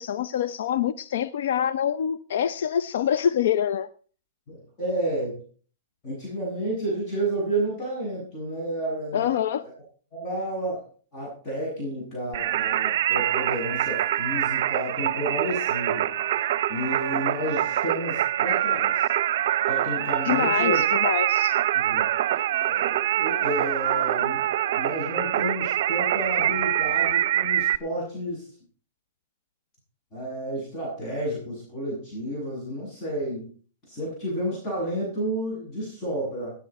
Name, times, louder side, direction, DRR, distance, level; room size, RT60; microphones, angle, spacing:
voice 1, 0.0-3.9 9.1-9.6 20.2-21.6, left 9 dB, 70° left, 14 dB, 0.6 m, -25 dB
voice 2, 4.5-5.4 6.0-9.3 9.6-9.7 10.1-10.9 11.1-16.1 16.7-19.1 19.7-20.8 21.7-22.1 22.7-24.4 24.7-28.5 30.1-33.5 33.9-36.5, right 1 dB, 30° left, -4 dB, 7.9 m, -31 dB
Singing, 12.3-27.8, right 12 dB, 60° right, 0.7 m, -25 dB
17.5 x 9.9 x 4.2 m, 0.41 s
hypercardioid pair, 150°, 0 cm